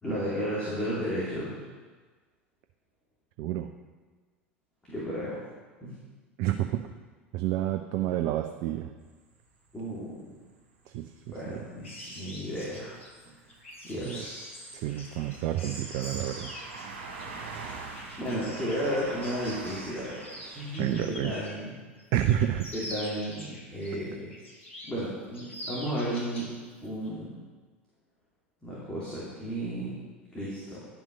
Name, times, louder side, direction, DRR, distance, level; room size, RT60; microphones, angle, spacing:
voice 1, 0.0-1.6 4.9-5.4 5.8-5.9 9.7-10.2 11.3-11.9 12.1-13.0 13.2-13.3 13.8-14.5 18.2-21.7 22.7-24.3 24.9-26.5 26.8-27.4 28.6-30.0 30.3-30.8, equal, 15° left, -9 dB, 2.8 m, -33 dB
voice 2, 3.4-3.7 6.4-6.8 7.3-8.9 10.9-11.6 14.0-14.2 14.7-16.5 20.8-21.3 22.1-22.7, right 12 dB, 45° right, 7 dB, 0.5 m, -29 dB
sound 1, 9.0-9.1 10.6-10.7 11.3-11.5 11.8-12.0 12.2-21.0, right 4 dB, 65° right, 2.5 m, -44 dB
sound 2, 11.8-21.7 22.0-23.9 24.3-25.0 25.3-26.6 26.9-27.1, equal, 75° left, 1.6 m, -44 dB
11.0 x 6.1 x 5.3 m, 1.4 s
figure-of-eight pair, 75°, 7 cm